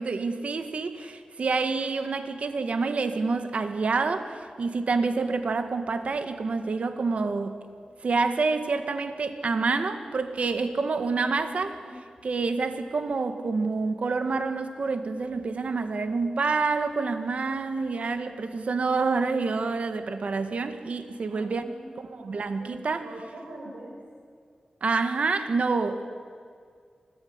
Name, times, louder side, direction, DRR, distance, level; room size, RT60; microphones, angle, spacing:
voice 1, 0.0-7.6 8.0-11.8 12.2-21.6 22.0-23.1 24.8-26.1, right 4 dB, 70° right, 8 dB, 2.0 m, -27 dB
voice 2, 21.3-24.0, right 1 dB, 90° right, -3 dB, 6.0 m, -44 dB
24.5 x 20.5 x 9.8 m, 2.1 s
cardioid pair, 55°, 2 cm